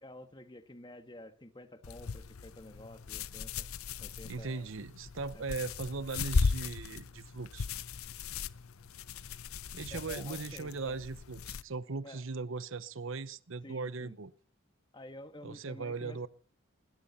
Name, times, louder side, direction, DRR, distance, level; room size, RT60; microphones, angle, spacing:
voice 1, 0.0-3.7 4.0-4.7 5.3-5.4 9.9-11.0 12.0-12.2 13.6-14.2 14.9-16.3, left 1 dB, 20° left, 1.5 m, -50 dB
sound 1, 1.8-11.6, left 4 dB, 85° left, 0.7 m, -37 dB
voice 2, 4.3-7.7 9.7-14.3 15.4-16.3, right 4 dB, 70° right, 0.9 m, -39 dB
20.5 x 17.0 x 4.2 m
head